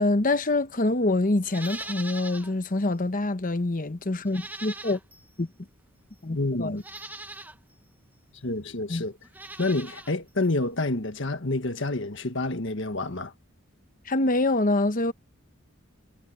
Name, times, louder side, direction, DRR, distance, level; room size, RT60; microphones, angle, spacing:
voice 1, 0.0-5.0 5.4-5.5 6.2-6.8 8.9-9.0 14.1-15.1, left 2 dB, 40° left, 1.0 m, -25 dB
Livestock farm animals working animals, 1.4-2.5 2.9-3.0 4.2-5.3 6.1-6.2 6.8-7.6 9.2-10.1 10.4-10.5, right 2 dB, 10° right, 1.1 m, -40 dB
voice 2, 6.3-6.8 8.4-9.1 9.6-13.3, left 2 dB, 60° left, 1.6 m, -28 dB
head